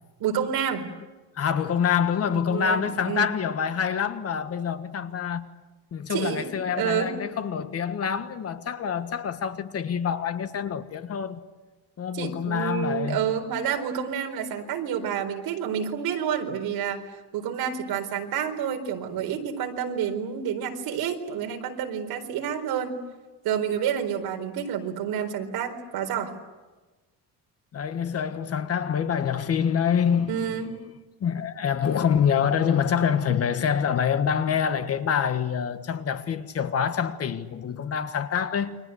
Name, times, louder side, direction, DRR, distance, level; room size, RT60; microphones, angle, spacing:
voice 1, 0.2-0.9 2.5-3.3 6.1-7.2 12.1-23.0 23.4-26.3 30.3-30.7, right 8 dB, 70° right, 4.3 m, -29 dB
voice 2, 1.3-5.4 5.9-11.4 12.0-13.4 27.7-30.5 31.2-38.8, left 7 dB, 40° left, 1.6 m, -26 dB
29.5 x 24.5 x 8.0 m
cardioid pair, 160°, 38 cm